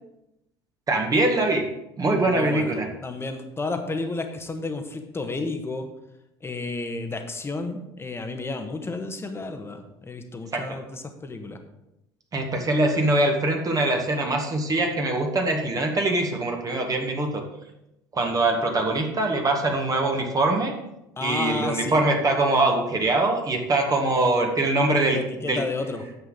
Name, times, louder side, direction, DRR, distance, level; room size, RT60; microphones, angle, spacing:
voice 1, 0.9-1.6 2.0-2.9 10.5-10.6 12.3-17.4 18.1-20.7 21.2-25.6, right 2 dB, 30° right, 2 dB, 1.8 m, -23 dB
voice 2, 2.3-2.7 3.0-5.9 6.4-11.6 21.2-22.0 24.9-26.0, left 3 dB, 20° left, 6 dB, 1.4 m, -31 dB
9.8 x 7.7 x 3.9 m, 0.87 s
figure-of-eight pair, 65°, 12 cm